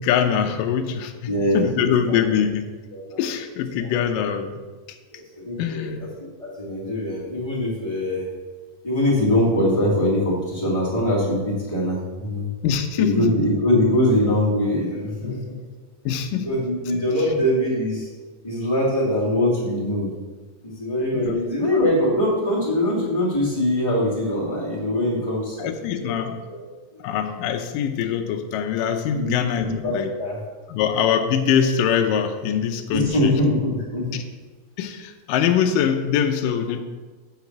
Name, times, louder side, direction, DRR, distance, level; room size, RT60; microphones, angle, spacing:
voice 1, 0.0-1.1 1.5-2.7 3.2-4.6 5.6-6.0 12.6-13.3 15.2-15.4 16.1-16.5 21.1-21.4 21.7-21.8 25.6-26.4 27.0-30.1 30.7-33.3 34.8-36.8, left 8 dB, 80° left, 4 dB, 2.3 m, -23 dB
voice 2, 1.3-2.2 2.9-3.2 3.8-3.9 5.1-6.1 6.4-8.3 8.8-12.5 13.0-15.5 16.4-18.1 18.4-20.1 20.6-26.2 26.5-26.6 26.9-27.0 29.1-29.3 29.6-30.4 32.9-34.2, left 1 dB, 10° left, -8 dB, 2.2 m, -23 dB
7.9 x 4.8 x 7.2 m, 1.4 s
omnidirectional pair, 4.0 m